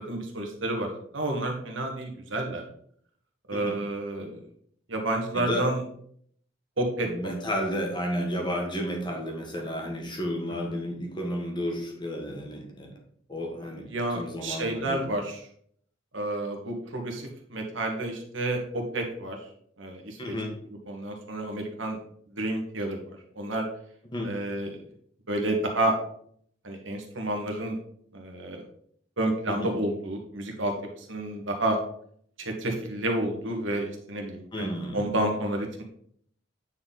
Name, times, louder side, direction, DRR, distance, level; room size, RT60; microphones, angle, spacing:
voice 1, 0.1-2.6 3.5-4.4 4.9-5.8 6.8-7.3 13.9-15.4 16.1-19.4 19.8-20.3 20.9-22.0 22.3-23.0 23.3-23.7 24.2-24.8 25.3-25.9 26.6-27.8 28.1-28.6 29.2-31.8 32.4-35.8, right 1 dB, 75° right, 3 dB, 1.6 m, -30 dB
voice 2, 7.1-12.9 13.3-15.0 20.2-20.5 24.1-24.3 29.5-29.7 34.5-35.0, equal, 25° left, 1 dB, 1.4 m, -32 dB
9.2 x 4.3 x 3.9 m, 0.64 s
head